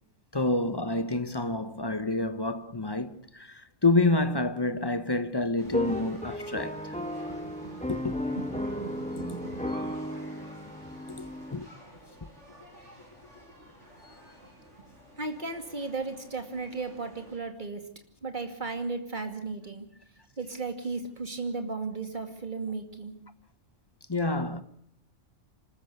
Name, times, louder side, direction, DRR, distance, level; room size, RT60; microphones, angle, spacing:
voice 1, 0.3-6.8 7.9-8.2 11.1-11.7 24.1-24.6, left 2 dB, 20° left, 1.0 m, -28 dB
sound 1, 5.6-11.5, left 1 dB, 5° left, 1.6 m, -34 dB
sound 2, 5.6-17.4, right 1 dB, 70° right, 7.6 m, -52 dB
voice 2, 7.3-7.9 8.3-9.6 9.9-10.0 15.2-17.8 18.2-19.9 20.4-23.1, right 3 dB, 40° right, 2.6 m, -36 dB
26.0 x 13.5 x 8.1 m
omnidirectional pair, 1.3 m